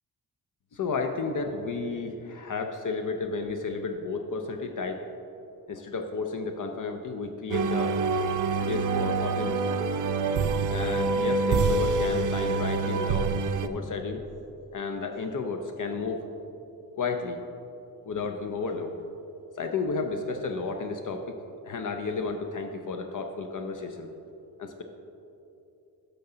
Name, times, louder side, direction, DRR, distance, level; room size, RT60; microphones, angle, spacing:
voice 1, 0.7-5.0 5.7-8.0 8.7-9.9 10.7-13.3 13.6-14.2 14.7-16.3 16.9-17.4 18.0-18.9 19.6-21.3 21.6-24.1 24.6-24.8, left 4 dB, 55° left, 5 dB, 0.6 m, -32 dB
sound 1, 7.5-13.7, right 4 dB, 55° right, 0.4 m, -26 dB
11.0 x 6.9 x 3.8 m, 2.8 s
wide cardioid pair, 130°, 38 cm